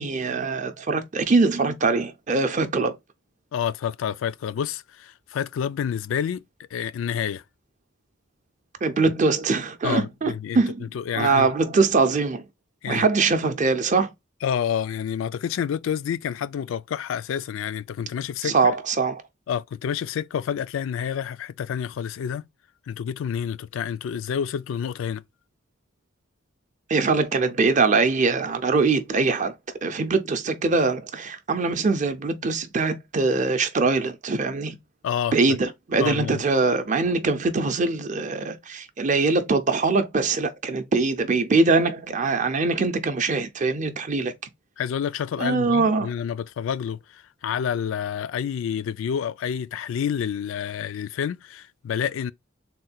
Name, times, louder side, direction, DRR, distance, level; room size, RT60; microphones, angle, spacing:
voice 1, 0.0-3.0 8.8-10.9 11.2-12.5 12.9-14.1 18.4-19.2 26.9-29.5 29.8-34.8 35.3-44.3 45.4-46.1, right 3 dB, 40° right, 0.5 m, -22 dB
voice 2, 3.5-6.4 6.7-7.4 9.8-10.6 10.9-11.5 12.8-13.1 14.4-18.7 19.5-22.4 22.9-25.2 35.0-35.3 36.0-36.4 44.8-52.3, left 8 dB, 75° left, 0.3 m, -28 dB
3.7 x 2.2 x 4.1 m
head